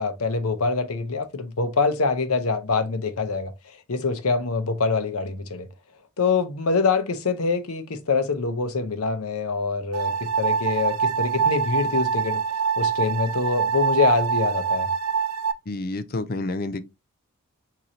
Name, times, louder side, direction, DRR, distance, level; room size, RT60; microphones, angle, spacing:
voice 1, 0.0-3.5 3.9-5.7 6.2-12.4 12.8-14.9, left 4 dB, 80° left, 0.8 m, -25 dB
sound 1, 9.9-15.5, right 6 dB, 80° right, 0.6 m, -24 dB
voice 2, 15.7-16.8, left 2 dB, 40° left, 0.5 m, -29 dB
4.7 x 3.8 x 2.8 m
head